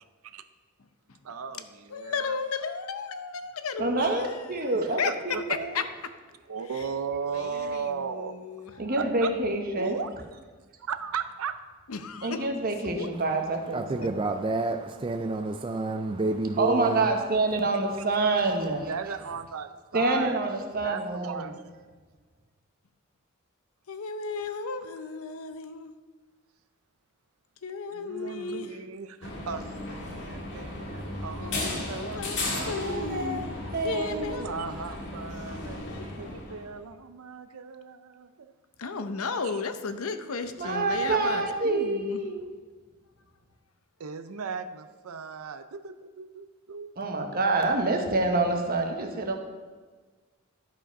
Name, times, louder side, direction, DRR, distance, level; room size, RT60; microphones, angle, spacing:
voice 1, 1.2-2.2 5.3-5.4 6.5-8.4 8.7-9.3 9.8-10.1 10.8-11.6 18.9-20.4 20.8-21.5 27.9-33.2 33.9-35.8 36.2-38.5 44.0-46.9, right 6 dB, 90° right, 0.6 m, -37 dB
voice 2, 1.9-4.4 5.0-5.1 5.7-5.8 6.7-6.9 7.3-8.7 11.9-12.5 12.8-13.1 14.0-14.1 23.9-25.9 27.6-28.8 31.4-32.4 32.7-34.7 35.4-36.1 38.8-42.2, left 4 dB, 80° left, 0.7 m, -34 dB
voice 3, 3.8-5.8 8.8-10.0 12.2-14.2 16.6-18.9 19.9-21.5 32.6-33.5 33.7-34.3 40.6-42.5 47.0-49.4, right 2 dB, 45° right, 1.1 m, -27 dB
voice 4, 13.7-17.1, right 3 dB, 25° right, 0.3 m, -29 dB
sound 1, 29.2-36.7, left 2 dB, 60° left, 1.8 m, -35 dB
11.5 x 5.1 x 5.3 m
head